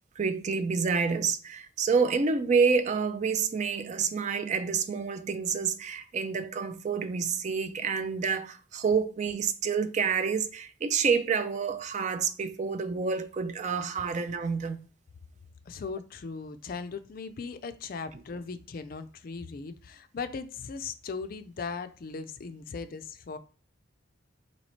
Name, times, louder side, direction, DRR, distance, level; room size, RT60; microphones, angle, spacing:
voice 1, 0.2-14.8, right 5 dB, 40° right, 0.4 m, -28 dB
voice 2, 15.7-23.4, left 4 dB, 50° left, 0.4 m, -38 dB
3.0 x 2.9 x 4.2 m
head